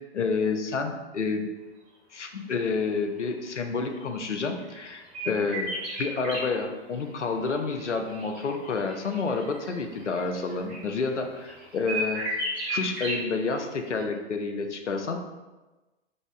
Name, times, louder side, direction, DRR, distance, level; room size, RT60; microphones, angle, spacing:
voice 1, 0.1-1.5 2.1-12.2 12.7-15.2, left 4 dB, 90° left, 5 dB, 0.5 m, -29 dB
sound 1, 4.0-6.4 7.1-13.5 13.9-14.0, right 1 dB, 25° right, 0.8 m, -35 dB
3.8 x 2.4 x 3.2 m, 1.2 s
figure-of-eight pair, 100°, 35 cm